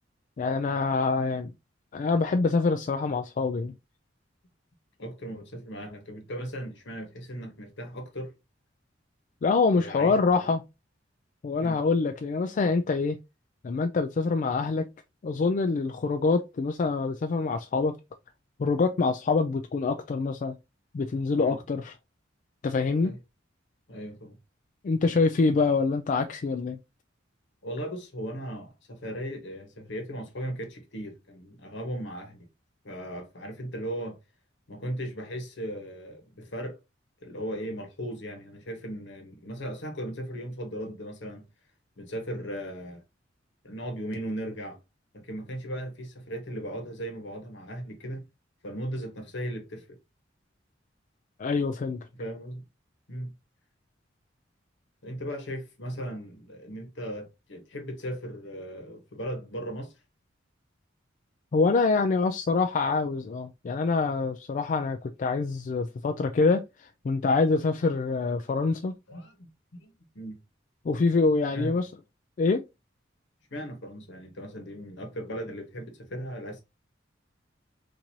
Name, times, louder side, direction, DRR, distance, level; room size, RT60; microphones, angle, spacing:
voice 1, 0.4-1.5 1.9-3.7 9.4-10.6 11.4-13.2 13.6-14.8 15.2-17.9 18.6-20.6 20.9-21.9 22.6-23.1 24.8-26.8 51.4-52.0 61.5-68.9 70.8-71.9 72.4-72.6, left 4 dB, 40° left, 0.3 m, -25 dB
voice 2, 5.0-8.3 9.7-10.4 11.6-11.8 21.4-21.6 23.0-23.2 23.9-24.4 27.6-32.5 32.8-34.2 34.7-36.8 37.2-41.5 42.0-43.0 43.6-44.8 45.1-48.3 48.6-49.9 52.2-52.6 53.1-53.3 55.0-59.9 69.1-69.5 69.8-70.4 71.5-71.8 73.5-76.6, equal, 65° left, 1.1 m, -37 dB
4.5 x 2.6 x 2.7 m
head